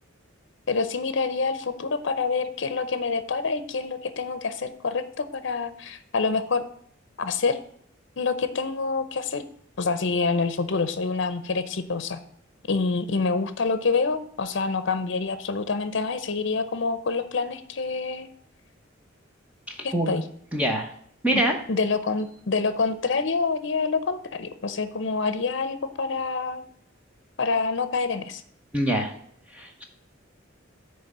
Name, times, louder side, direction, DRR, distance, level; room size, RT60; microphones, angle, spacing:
voice 1, 0.7-6.6 7.2-7.6 8.2-9.4 9.8-12.2 12.7-18.3 19.8-20.2 21.3-21.4 21.7-26.6 27.4-28.4, left 4 dB, 65° left, 11 dB, 0.7 m, -27 dB
voice 2, 19.8-20.2 20.5-20.9 21.2-21.6 28.7-29.1 29.6-29.8, right 1 dB, 5° right, 2 dB, 1.0 m, -24 dB
8.9 x 3.3 x 6.6 m, 0.63 s
head